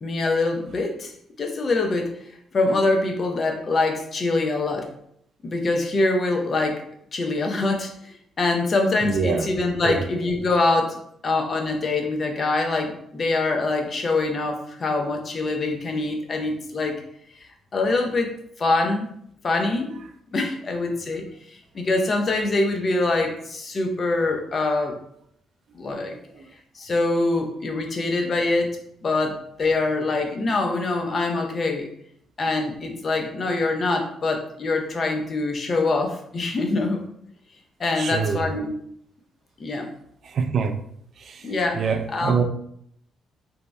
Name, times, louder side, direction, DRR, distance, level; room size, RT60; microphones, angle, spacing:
voice 1, 0.0-1.1 1.4-2.1 2.5-4.9 5.4-6.8 7.1-11.0 11.2-17.0 17.3-19.1 19.4-19.9 20.3-25.0 25.7-26.2 26.7-28.8 29.0-31.9 32.4-37.0 37.8-38.7 39.6-39.9 41.4-42.4, left 2 dB, 40° left, 3 dB, 0.6 m, -24 dB
voice 2, 9.0-9.5 9.8-10.0 26.4-26.5 38.0-38.4 40.3-40.8 41.3-41.4 41.7-42.4, right 6 dB, 55° right, 7 dB, 0.3 m, -24 dB
2.7 x 2.0 x 3.5 m, 0.70 s
cardioid pair, 90°, 0 cm